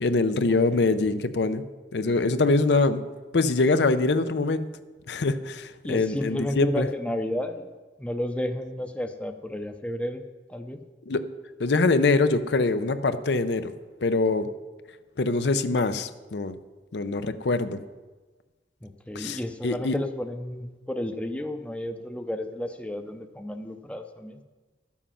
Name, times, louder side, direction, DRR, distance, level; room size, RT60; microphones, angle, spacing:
voice 1, 0.0-1.7 1.9-3.0 3.3-4.6 5.1-6.9 11.1-11.2 11.6-13.7 14.0-14.5 15.2-16.5 16.9-17.8 19.1-20.0, left 3 dB, 70° left, 11 dB, 0.6 m, -24 dB
voice 2, 5.8-7.7 8.0-10.2 10.5-10.8 18.8-24.4, left 1 dB, 5° left, 6 dB, 0.6 m, -32 dB
12.5 x 7.4 x 5.7 m, 1.3 s
head